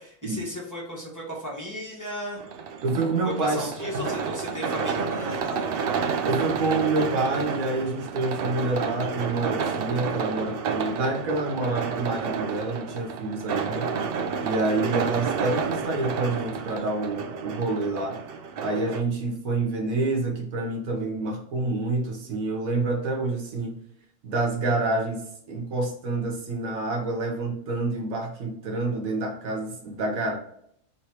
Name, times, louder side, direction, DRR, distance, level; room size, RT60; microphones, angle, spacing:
voice 1, 0.0-2.4 3.2-5.7, equal, 15° left, -4 dB, 1.2 m, -35 dB
sound 1, 2.4-19.0, right 6 dB, 60° right, 0.6 m, -30 dB
voice 2, 2.8-4.0 6.3-14.0 14.4-18.2 18.6-23.8 24.2-30.4, right 2 dB, 90° right, 2 dB, 1.4 m, -28 dB
3.3 x 3.2 x 4.3 m, 0.68 s
omnidirectional pair, 1.4 m